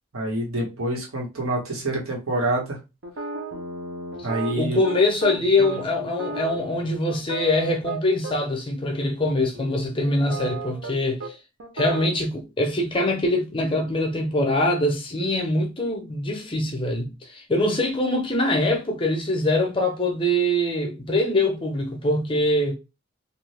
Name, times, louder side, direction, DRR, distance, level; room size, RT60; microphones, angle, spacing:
voice 1, 0.1-2.8 4.2-4.8 5.6-5.7, right 1 dB, 90° right, 1.3 m, -27 dB
sound 1, 3.0-8.3 8.8-9.0 9.5-10.9 11.2-11.3 11.6-12.2, right 3 dB, 55° right, 0.7 m, -34 dB
voice 2, 4.6-11.3 11.7-22.8, left 1 dB, 25° left, 0.6 m, -23 dB
2.7 x 2.5 x 3.4 m
head